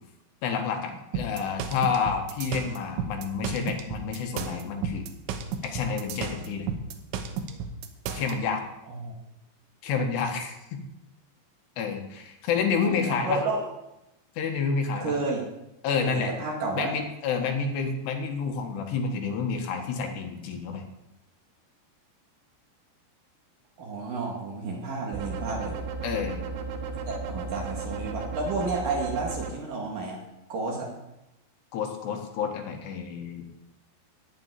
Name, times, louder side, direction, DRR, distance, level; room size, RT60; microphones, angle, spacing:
voice 1, 0.4-5.0 5.6-6.7 8.1-8.6 9.8-10.8 11.8-13.4 14.4-15.1 15.8-16.3 16.7-20.8 26.0-26.4 31.7-33.5, left 5 dB, 70° left, 3 dB, 3.3 m, -29 dB
sound 1, 1.1-8.3, right 5 dB, 90° right, 3.5 m, -33 dB
voice 2, 12.8-13.6 15.0-15.4 16.0-17.0 23.8-25.8 27.1-30.2 30.5-30.9, right 3 dB, 55° right, 0 dB, 3.2 m, -31 dB
sound 2, 25.1-29.5, right 5 dB, 70° right, 2.5 m, -34 dB
13.5 x 5.8 x 9.5 m, 0.90 s
omnidirectional pair, 5.2 m